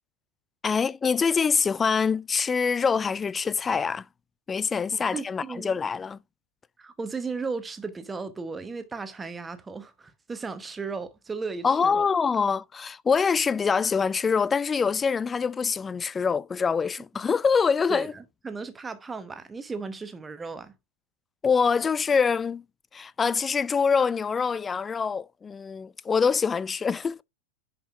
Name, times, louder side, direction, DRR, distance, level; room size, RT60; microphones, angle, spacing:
voice 1, 0.6-4.0 4.5-6.2 11.6-18.1 21.4-22.6 22.9-27.2, left 5 dB, 15° left, 0.3 m, -25 dB
voice 2, 5.1-5.8 6.8-12.1 17.9-20.7, right 4 dB, 15° right, 1.0 m, -35 dB
10.0 x 5.2 x 2.5 m
figure-of-eight pair, 90°, 0 cm